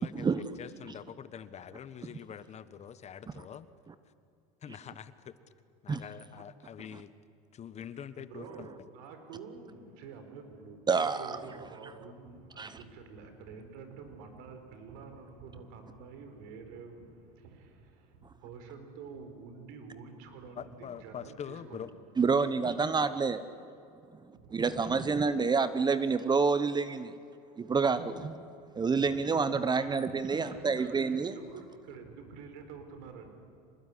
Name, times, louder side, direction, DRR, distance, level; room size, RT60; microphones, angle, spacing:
voice 1, 0.0-3.7 4.6-5.3 5.8-7.1 7.5-8.7 20.6-21.9, left 8 dB, 35° left, 14 dB, 1.4 m, -45 dB
voice 2, 8.2-21.9 24.3-25.0 27.9-28.4 29.7-30.0 30.2-33.3, right 5 dB, 70° right, 7 dB, 4.4 m, -48 dB
voice 3, 10.9-11.4 12.6-12.8 22.2-23.4 24.5-27.1 27.6-28.3 28.7-31.3, right 5 dB, 20° right, 13 dB, 1.0 m, -28 dB
25.0 x 20.0 x 10.0 m, 2.5 s
supercardioid pair, 95°, 19 cm